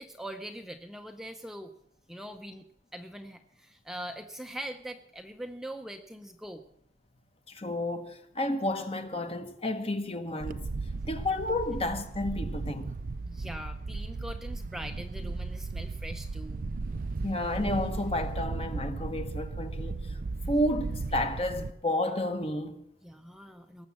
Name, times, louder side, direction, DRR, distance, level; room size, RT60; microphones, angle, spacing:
voice 1, 0.0-1.7 2.1-2.6 2.9-6.6 13.3-16.7 23.0-23.9, right 1 dB, ahead, 0.6 m, -42 dB
voice 2, 7.5-10.7 11.1-12.9 17.2-20.2 20.5-22.8, left 1 dB, 30° left, 1.0 m, -31 dB
Wind, 10.4-21.7, right 3 dB, 50° right, 0.4 m, -36 dB
19.0 x 7.3 x 7.3 m
head